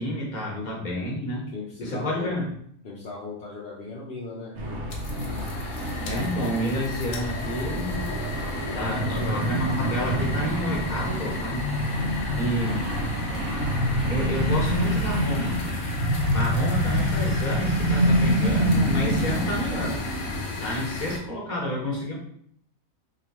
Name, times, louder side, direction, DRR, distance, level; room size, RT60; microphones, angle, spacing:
voice 1, 0.0-1.5 1.8-2.5 6.1-8.1 8.6-11.6 12.4-12.8 14.1-15.6 16.3-20.0 20.6-22.1, equal, 35° left, -2 dB, 1.0 m, -29 dB
voice 2, 1.5-2.4 2.8-4.7 8.8-9.8 12.3-13.6, left 3 dB, 60° left, -4 dB, 0.6 m, -38 dB
sound 1, 4.6-20.5, equal, 80° right, 1.1 m, -26 dB
sound 2, 4.9-21.2, left 5 dB, 75° left, 1.1 m, -35 dB
3.0 x 3.0 x 2.9 m, 0.67 s
omnidirectional pair, 1.5 m